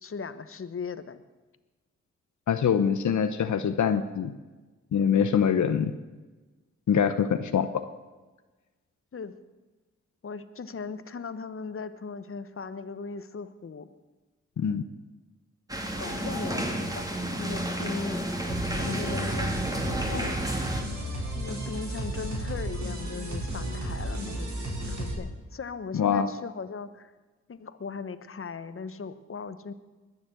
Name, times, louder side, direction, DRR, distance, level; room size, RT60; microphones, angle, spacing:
voice 1, 0.0-1.2 9.1-9.3 10.2-13.9 16.0-17.1 17.4-18.2 18.7-19.5 19.9-20.7 21.3-27.1 27.5-29.7, left 5 dB, 45° left, 12 dB, 1.1 m, -38 dB
voice 2, 2.5-4.3 4.9-5.9 6.9-7.7 14.6-14.8 25.9-26.3, left 7 dB, 80° left, 10 dB, 0.8 m, -24 dB
sound 1, 15.7-20.8, right 1 dB, 10° right, 2.5 m, -31 dB
sound 2, 18.5-25.1, right 1 dB, 70° right, 5.0 m, -33 dB
21.0 x 7.3 x 7.9 m, 1.2 s
cardioid pair, 65°, 29 cm